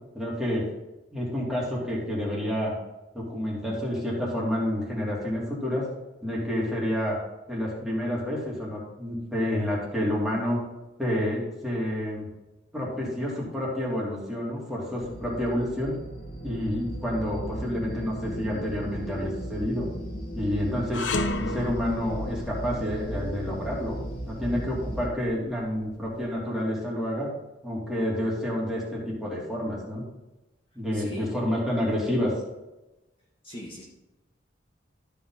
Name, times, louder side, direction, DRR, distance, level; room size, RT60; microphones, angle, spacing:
voice 1, 0.1-0.7 1.1-2.7 3.1-5.8 6.2-7.2 7.5-10.6 11.0-12.3 12.7-16.0 16.4-19.9 20.3-21.1 21.4-24.0 24.3-27.3 27.6-30.0 30.7-32.3, left 1 dB, 5° right, -6 dB, 2.9 m, -29 dB
sound 1, 15.0-25.1, right 1 dB, 55° left, 2.3 m, -36 dB
sound 2, 20.9-26.2, left 2 dB, 80° left, 0.9 m, -34 dB
voice 2, 30.9-31.3 33.4-33.8, equal, 30° left, -4 dB, 1.5 m, -40 dB
13.0 x 5.6 x 4.1 m, 1.0 s
head